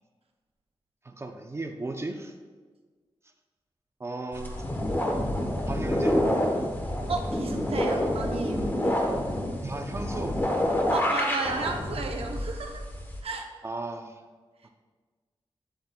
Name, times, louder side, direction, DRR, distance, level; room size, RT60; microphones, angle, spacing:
voice 1, 1.0-2.3 4.0-4.9 5.7-6.2 9.6-10.4 13.6-14.2, right 2 dB, 25° right, 5 dB, 0.4 m, -36 dB
sound 1, 4.3-13.2, left 1 dB, 20° left, 0.9 m, -28 dB
voice 2, 7.1-9.0 10.9-12.8 13.2-13.5, right 3 dB, 85° right, 3 dB, 0.7 m, -33 dB
10.0 x 7.9 x 2.2 m, 1.5 s
wide cardioid pair, 165°, 10 cm